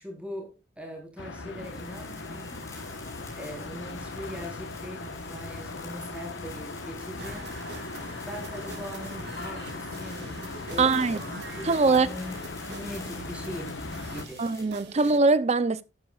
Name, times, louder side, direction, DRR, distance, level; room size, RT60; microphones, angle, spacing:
voice 1, 0.0-2.6 3.4-7.5 8.2-10.3 10.7-11.2 11.5-12.4 12.7-13.7 14.1-14.4, equal, 5° right, 4.4 m, -40 dB
sound 1, 1.2-14.3, left 3 dB, 90° left, 1.3 m, -39 dB
sound 2, 1.5-14.6, left 3 dB, 20° left, 5.7 m, -49 dB
sound 3, 7.2-15.2, right 3 dB, 60° right, 1.2 m, -45 dB
voice 2, 10.8-12.1 14.4-15.8, right 3 dB, 35° right, 0.6 m, -23 dB
12.5 x 10.0 x 2.5 m
head